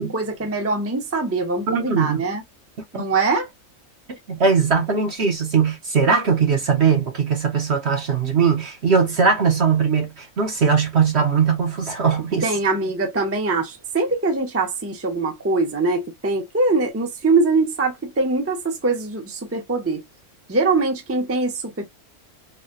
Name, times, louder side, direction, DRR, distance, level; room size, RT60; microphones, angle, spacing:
voice 1, 0.0-2.4 2.9-3.5 12.4-20.0 20.5-21.8, right 3 dB, 15° right, 0.7 m, -22 dB
voice 2, 1.7-2.2 2.9-3.0 4.3-12.5, right 6 dB, 50° right, 1.1 m, -20 dB
3.9 x 2.2 x 2.5 m
omnidirectional pair, 1.6 m